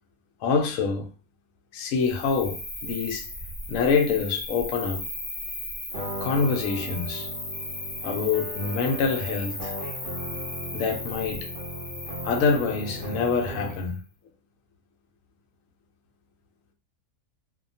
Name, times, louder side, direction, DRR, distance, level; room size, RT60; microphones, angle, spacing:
voice 1, 0.4-1.1 1.7-3.3 3.7-5.0 6.2-7.3 8.0-9.8 10.7-11.5 12.2-14.0, left 5 dB, 70° left, 1.0 m, -26 dB
Cricket, 2.0-13.9, left 1 dB, 30° left, 0.6 m, -37 dB
sound 1, 5.9-14.0, equal, 55° right, 0.7 m, -37 dB
2.7 x 2.2 x 2.6 m
omnidirectional pair, 1.5 m